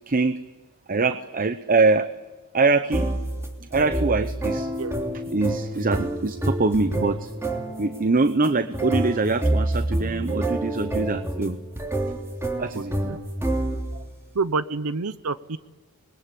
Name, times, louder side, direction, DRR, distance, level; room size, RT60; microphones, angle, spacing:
voice 1, 0.1-0.4 0.9-2.1 2.5-3.1 3.7-4.7 5.3-7.3 7.8-11.6 12.6-13.0, right 3 dB, 40° right, 11 dB, 0.8 m, -23 dB
sound 1, 2.9-14.1, right 1 dB, 10° right, 2.9 m, -28 dB
voice 2, 12.7-13.2 14.4-15.6, right 4 dB, 85° right, 14 dB, 0.8 m, -28 dB
26.0 x 21.0 x 8.5 m, 1.2 s
head